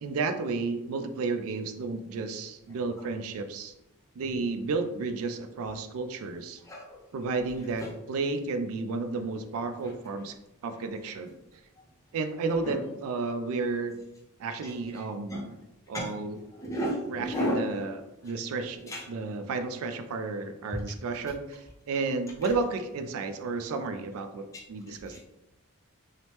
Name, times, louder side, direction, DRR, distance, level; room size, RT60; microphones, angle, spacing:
voice 1, 0.0-3.7 4.2-6.6 7.1-10.4 10.6-11.4 12.1-14.0 14.4-15.5 15.9-16.4 17.1-17.9 18.2-25.2, right 3 dB, 65° right, 8 dB, 0.3 m, -32 dB
voice 2, 6.6-7.0 7.8-7.9 12.6-12.8 14.6-15.4 15.9-16.1 16.5-17.7 18.2-18.3 18.9-19.0 20.7-20.8 25.1-25.2, equal, 15° left, -4 dB, 0.4 m, -33 dB
2.8 x 2.0 x 3.1 m, 0.93 s
head